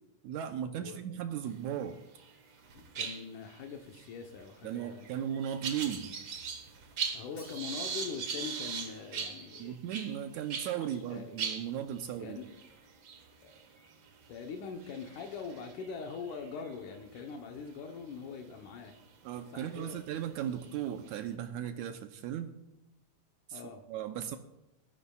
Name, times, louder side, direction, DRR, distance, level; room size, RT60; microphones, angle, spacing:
voice 1, 0.2-2.0 4.6-6.1 9.6-12.4 19.2-22.5 23.5-23.6 23.9-24.4, right 10 dB, 80° right, 7 dB, 2.0 m, -36 dB
sound 1, 1.8-2.3 2.6-10.8 11.1-11.2 11.4-17.2 17.8-18.0 18.9-19.0 19.6-21.3, right 6 dB, 55° right, 1.5 m, -41 dB
voice 2, 2.7-5.1 7.1-9.8 10.9-11.4 12.2-12.5 13.4-13.5 14.3-18.9 19.5-20.0 23.5-23.8, left 5 dB, 80° left, 3 dB, 2.5 m, -43 dB
Shatter, 7.4-8.4, left 1 dB, 50° left, 7.0 m, -58 dB
19.5 x 14.0 x 2.3 m, 0.92 s
omnidirectional pair, 3.5 m